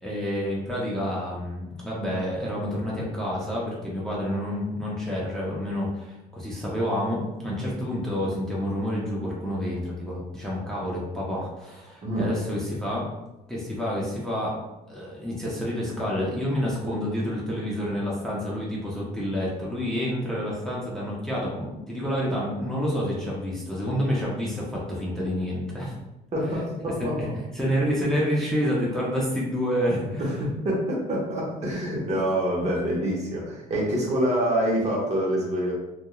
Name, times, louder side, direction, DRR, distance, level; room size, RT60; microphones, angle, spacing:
voice 1, 0.0-13.1 13.5-14.6 14.9-25.9 26.4-26.6 27.0-30.4 32.1-32.2 32.6-32.7, equal, 5° left, -6 dB, 0.6 m, -28 dB
voice 2, 26.3-27.3 30.2-35.7, equal, 40° right, -3 dB, 0.9 m, -26 dB
2.3 x 2.2 x 2.9 m, 0.99 s
cardioid pair, 110°, 17 cm